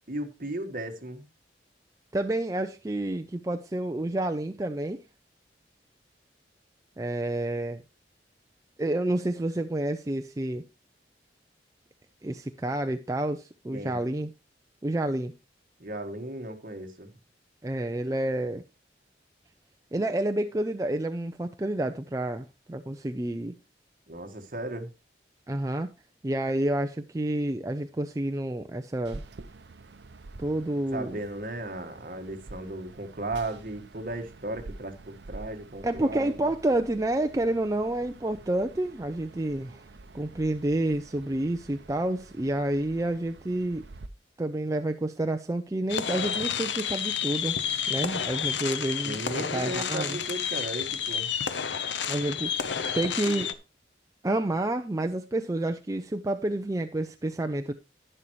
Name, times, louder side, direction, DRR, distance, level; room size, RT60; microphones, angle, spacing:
voice 1, 0.1-1.3 13.7-14.0 15.8-17.1 24.1-24.9 30.9-36.3 49.0-51.3, right 1 dB, 50° right, 1.5 m, -36 dB
voice 2, 2.1-5.0 7.0-7.8 8.8-10.6 12.2-14.3 14.8-15.4 17.6-18.6 19.9-23.5 25.5-25.9 26.2-29.2 30.4-31.1 35.8-39.8 40.1-43.8 44.4-47.6 47.9-50.2 52.1-52.5 52.9-53.6 54.2-57.7, right 1 dB, 20° right, 0.4 m, -29 dB
sound 1, 29.0-44.1, right 3 dB, 75° right, 0.7 m, -48 dB
sound 2, 45.9-53.5, left 8 dB, 80° left, 0.8 m, -30 dB
11.0 x 10.0 x 3.1 m
head